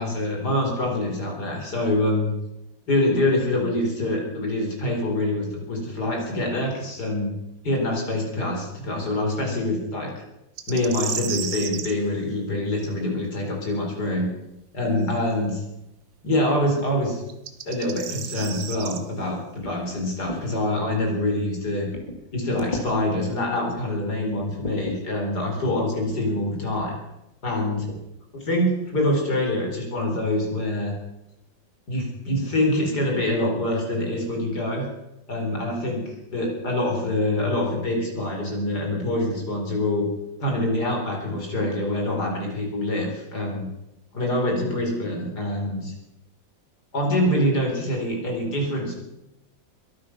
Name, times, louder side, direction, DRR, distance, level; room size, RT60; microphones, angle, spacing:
voice 1, 0.0-2.3 2.9-7.3 7.6-10.1 10.7-14.3 14.7-15.6 16.2-17.2 17.7-21.9 22.3-26.9 27.4-27.9 28.3-30.9 31.9-34.9 35.3-40.1 40.4-43.7 44.1-45.9 46.9-48.9, left 1 dB, 55° left, 0 dB, 4.6 m, -25 dB
sound 1, 10.6-11.9 15.1-15.2 17.3-19.0, right 8 dB, 65° right, 1.6 m, -32 dB
sound 2, 19.6-20.4 21.2-21.3 21.9-22.3 22.6-22.9 23.6-23.7 24.3-25.0 26.1-26.2 26.7-26.9 27.9-28.0 28.4-28.5 28.8-29.2, left 1 dB, 25° left, 2.4 m, -36 dB
22.5 x 9.3 x 6.0 m, 0.90 s
omnidirectional pair, 2.1 m